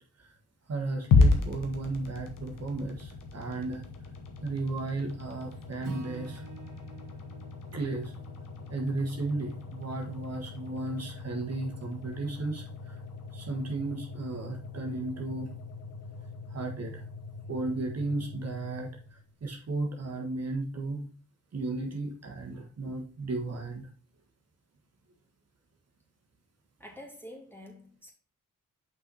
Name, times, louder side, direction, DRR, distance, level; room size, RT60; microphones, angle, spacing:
voice 1, 0.7-3.8 4.4-6.4 7.7-8.1 8.7-13.0 13.3-15.5 16.1-16.2 16.5-17.0 17.5-21.0 21.5-23.9, right 2 dB, 50° right, 1.4 m, -34 dB
sound 1, 1.1-19.3, left 4 dB, 90° left, 1.2 m, -34 dB
Acoustic guitar / Strum, 5.8-10.1, right 4 dB, 75° right, 1.4 m, -48 dB
voice 2, 26.8-28.1, left 1 dB, 5° left, 2.4 m, -47 dB
5.8 x 4.7 x 4.1 m
cardioid pair, 65°, 32 cm